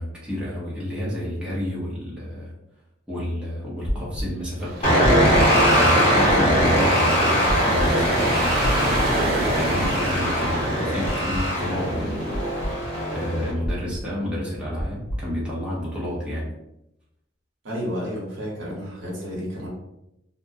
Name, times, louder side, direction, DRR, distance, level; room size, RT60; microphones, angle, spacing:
voice 1, 0.0-2.5 3.1-9.0 9.5-12.1 13.1-16.5, equal, 5° right, -7 dB, 0.7 m, -30 dB
sound 1, 3.8-4.2 5.0-5.4 6.3-6.7 7.5-7.8 8.6-9.0 9.8-10.2 11.0-11.4 12.3-12.7 13.6-14.0 14.8-15.2, equal, 50° left, 0.5 m, -27 dB
sound 2, 4.6-12.8, right 1 dB, 50° right, 0.5 m, -31 dB
sound 3, 4.8-13.5, equal, 30° left, 0.9 m, -21 dB
voice 2, 17.6-19.7, equal, 85° right, -4 dB, 0.9 m, -31 dB
2.4 x 2.1 x 2.6 m, 0.85 s
head